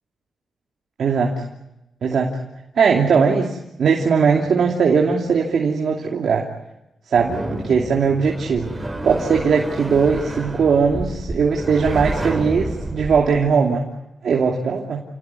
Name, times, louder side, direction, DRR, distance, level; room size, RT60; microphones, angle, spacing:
voice 1, 1.0-1.4 2.0-2.4 2.7-6.5 7.1-13.9 14.2-15.0, right 5 dB, 75° right, 0 dB, 2.9 m, -19 dB
sound 1, 7.1-13.3, right 1 dB, 15° right, 7.4 m, -29 dB
30.0 x 18.0 x 9.7 m, 0.93 s
cardioid pair, 55°, 0 cm